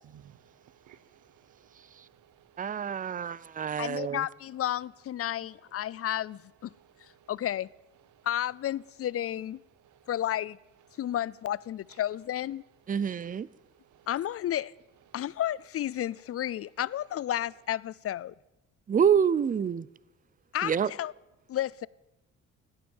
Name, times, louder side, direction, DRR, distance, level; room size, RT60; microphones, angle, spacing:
voice 1, 0.0-2.9 6.7-7.3 8.1-8.3 9.8-10.1 13.9-14.1, right 10 dB, 75° right, 1.0 m, -59 dB
voice 2, 2.6-4.2 12.9-13.5 18.9-19.9 20.6-20.9, right 7 dB, 25° right, 0.5 m, -27 dB
voice 3, 3.8-6.7 7.0-7.7 8.2-9.6 10.1-10.6 11.0-12.6 14.1-14.7 15.1-18.3 20.5-21.1 21.5-21.9, left 12 dB, 50° left, 0.5 m, -32 dB
16.0 x 12.5 x 7.2 m
cardioid pair, 90°, 30 cm